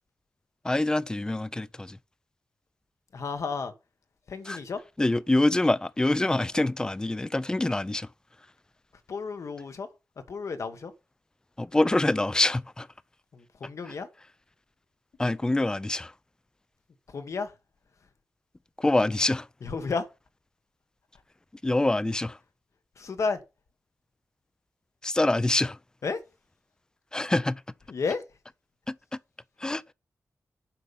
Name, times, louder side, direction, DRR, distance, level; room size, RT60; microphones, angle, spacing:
voice 1, 0.6-2.0 4.5-4.6 5.0-8.1 11.6-12.9 13.9-14.0 15.2-16.1 18.8-19.5 21.6-22.4 25.0-25.8 27.1-27.6 28.9-29.0 29.6-29.8, left 2 dB, 15° left, 0.4 m, -25 dB
voice 2, 3.1-3.7 4.3-4.8 9.1-9.9 10.3-10.9 13.3-14.1 17.1-17.5 19.6-20.1 23.0-23.4 26.0-26.2 27.9-28.2, left 4 dB, 60° left, 1.4 m, -32 dB
7.6 x 5.5 x 7.0 m
wide cardioid pair, 160°, 6 cm